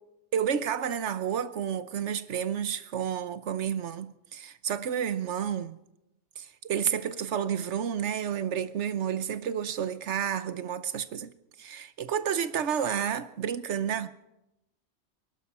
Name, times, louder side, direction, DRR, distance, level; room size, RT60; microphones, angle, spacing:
voice 1, 0.3-5.8 6.4-11.3 11.6-14.1, right 8 dB, 85° right, 1.2 m, -30 dB
25.5 x 11.5 x 4.3 m
omnidirectional pair, 1.2 m